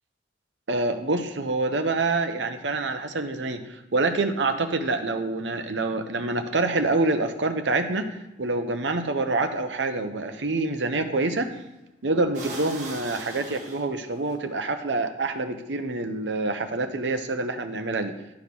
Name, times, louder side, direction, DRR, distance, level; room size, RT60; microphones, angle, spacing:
voice 1, 0.7-8.1 8.4-11.5 12.0-18.1, right 3 dB, 80° right, 6 dB, 0.8 m, -26 dB
sound 1, 11.3-11.6 12.3-14.3, right 2 dB, 45° right, 1.7 m, -39 dB
11.5 x 4.9 x 5.4 m, 0.96 s
head